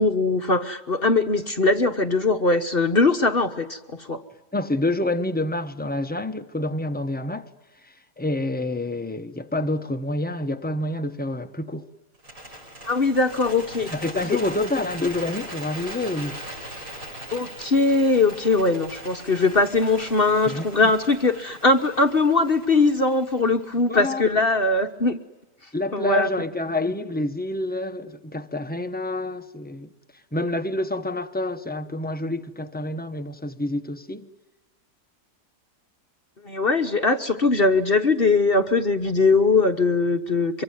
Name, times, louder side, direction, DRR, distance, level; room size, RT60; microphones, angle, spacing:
voice 1, 0.0-4.2 12.9-13.9 14.3-14.4 17.3-25.2 25.9-26.3 36.4-40.6, left 3 dB, 40° left, 1.2 m, -21 dB
voice 2, 4.5-7.5 7.8-11.8 13.9-16.4 20.5-20.6 23.9-24.3 25.7-29.9 30.3-34.3, left 2 dB, 5° left, 0.8 m, -28 dB
Bird, 12.1-24.3, right 1 dB, 50° right, 7.7 m, -40 dB
24.5 x 24.5 x 9.4 m
omnidirectional pair, 1.8 m